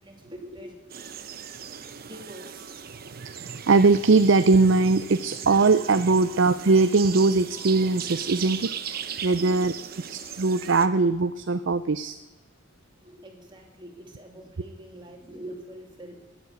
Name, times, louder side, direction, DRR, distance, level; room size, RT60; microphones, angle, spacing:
voice 1, 0.0-1.2 2.0-2.7 9.3-9.7 13.0-16.2, equal, 25° right, 1 dB, 2.7 m, -43 dB
sound 1, 0.9-10.9, right 8 dB, 50° right, 0.9 m, -38 dB
voice 2, 3.2-9.7 10.1-12.2, right 3 dB, 65° right, 11 dB, 0.6 m, -21 dB
20.0 x 7.7 x 8.4 m, 1.2 s
head